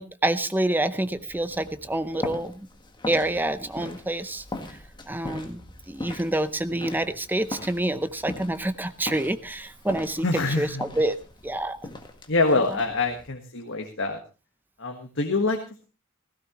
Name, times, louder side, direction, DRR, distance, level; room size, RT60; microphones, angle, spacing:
voice 1, 0.0-2.7 3.1-4.4 5.1-10.3 10.6-11.2 11.4-11.8, right 1 dB, 10° right, 12 dB, 0.7 m, -27 dB
sound 1, 1.0-13.3, left 2 dB, 20° left, 1.7 m, -40 dB
voice 2, 10.2-10.8 12.3-14.2 14.8-15.6, left 3 dB, 60° left, 3 dB, 1.6 m, -25 dB
16.5 x 15.5 x 3.1 m, 0.31 s
head